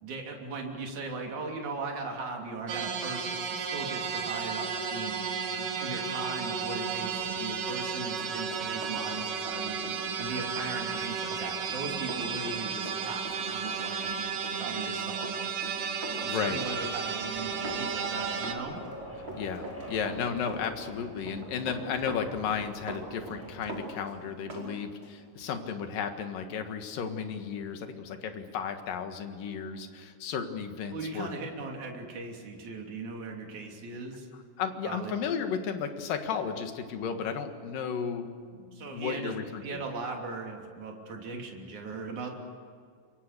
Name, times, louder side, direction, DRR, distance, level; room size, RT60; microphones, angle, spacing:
voice 1, 0.0-5.3 5.6-9.8 10.2-14.0 14.6-15.5 16.2-18.8 30.9-34.3 34.8-35.1 38.7-39.3 39.6-42.4, right 3 dB, 60° right, 1 dB, 4.4 m, -38 dB
sound 1, 2.7-18.5, right 6 dB, 75° right, 3.4 m, -33 dB
Run, 7.6-24.7 25.0-25.2, right 2 dB, 35° right, 5.7 m, -43 dB
voice 2, 16.1-16.6 19.4-31.3 34.6-39.8, left 7 dB, 80° left, 6 dB, 3.4 m, -34 dB
sound 2, 16.5-23.7, equal, 5° right, 5.9 m, -46 dB
27.0 x 23.5 x 6.8 m, 2.2 s
omnidirectional pair, 3.9 m